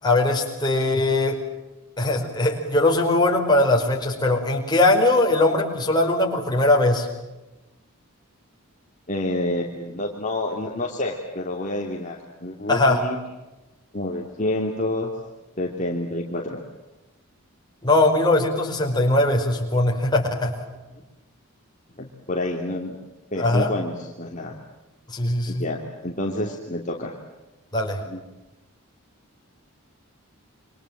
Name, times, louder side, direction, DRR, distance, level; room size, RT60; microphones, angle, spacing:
voice 1, 0.0-1.4 2.0-7.1 12.7-13.0 17.8-20.5 23.4-23.7 25.1-25.7 27.7-28.0, left 2 dB, 20° left, 1 dB, 5.0 m, -20 dB
voice 2, 9.1-13.2 13.9-15.1 15.6-16.6 22.0-23.0 23.3-24.5 25.5-27.1 28.1-28.2, left 1 dB, 35° left, 0 dB, 3.0 m, -28 dB
28.5 x 26.0 x 7.6 m, 1.0 s
head